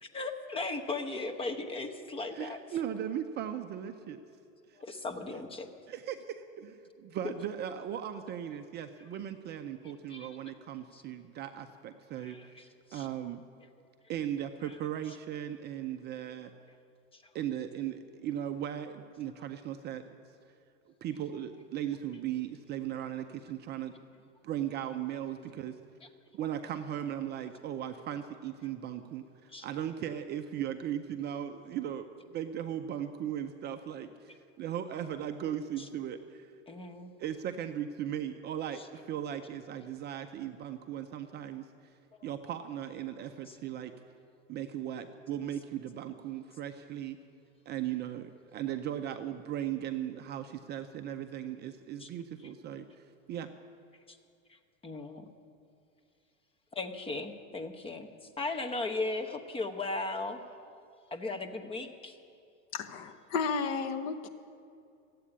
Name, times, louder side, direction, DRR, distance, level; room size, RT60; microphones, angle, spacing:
voice 1, 0.0-2.6 4.8-5.7 10.1-10.4 10.9-11.0 12.2-12.6 12.9-13.1 17.1-17.2 29.5-29.7 35.8-35.9 36.7-37.1 38.8-38.9 43.5-43.6 52.0-52.1 54.1-54.2 54.8-55.3 56.7-58.1 58.4-60.4 61.1-62.1, left 3 dB, 15° left, 6 dB, 1.0 m, -37 dB
voice 2, 2.3-4.2 5.9-12.4 12.9-13.4 14.1-16.5 17.3-20.0 21.0-23.9 24.4-25.8 26.3-32.1 32.3-36.5 37.2-41.7 42.2-43.9 44.5-47.2 47.7-52.9 53.3-53.5, right 10 dB, 25° right, 7 dB, 0.5 m, -37 dB
voice 3, 62.7-64.3, left 5 dB, 40° left, 9 dB, 1.0 m, -33 dB
14.5 x 8.4 x 9.9 m, 2.4 s
supercardioid pair, 130°, 38 cm